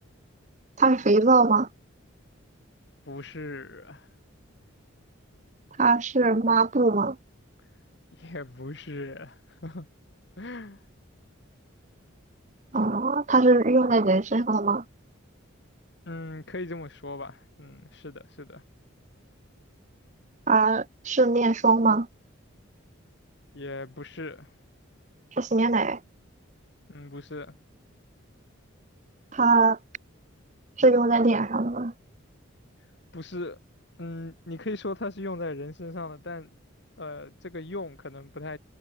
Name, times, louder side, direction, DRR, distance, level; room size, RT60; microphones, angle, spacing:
voice 1, 0.8-1.7 5.8-7.2 12.7-14.8 20.5-22.1 25.4-26.0 29.3-29.8 30.8-31.9, right 3 dB, 35° right, 1.1 m, -21 dB
voice 2, 3.0-4.1 8.1-9.9 10.4-10.8 16.1-18.6 23.5-24.5 26.9-27.5 33.1-33.6 34.0-36.5 37.0-38.6, left 2 dB, 55° left, 1.7 m, -38 dB
head